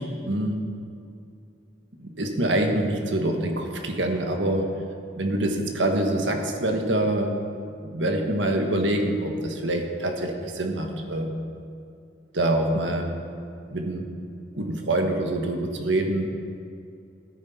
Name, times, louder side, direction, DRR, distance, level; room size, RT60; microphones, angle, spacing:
voice 1, 0.2-0.6 2.0-4.7 5.1-7.3 7.8-11.3 12.3-13.1 13.7-14.0 14.6-16.3, right 1 dB, 85° right, 3 dB, 1.4 m, -25 dB
13.5 x 9.8 x 4.3 m, 2.5 s
head